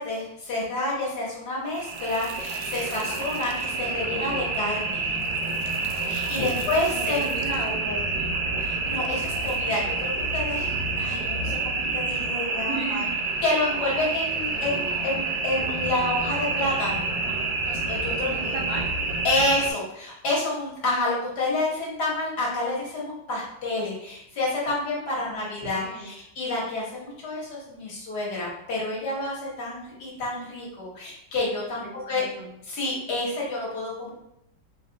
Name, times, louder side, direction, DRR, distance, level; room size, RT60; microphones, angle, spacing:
voice 1, 0.0-5.1 6.1-7.3 8.6-13.0 13.4-17.1 17.6-18.6 19.2-32.2 32.6-34.1, left 2 dB, 60° left, -5 dB, 1.7 m, -29 dB
sound 1, 1.7-19.7, right 3 dB, 90° right, 1.4 m, -28 dB
voice 2, 2.9-3.2 6.2-8.3 12.7-13.2 17.1-17.4 18.2-18.9 25.1-26.1 31.8-32.5, right 2 dB, 60° right, -4 dB, 1.0 m, -36 dB
4.2 x 2.4 x 3.8 m, 0.79 s
omnidirectional pair, 2.1 m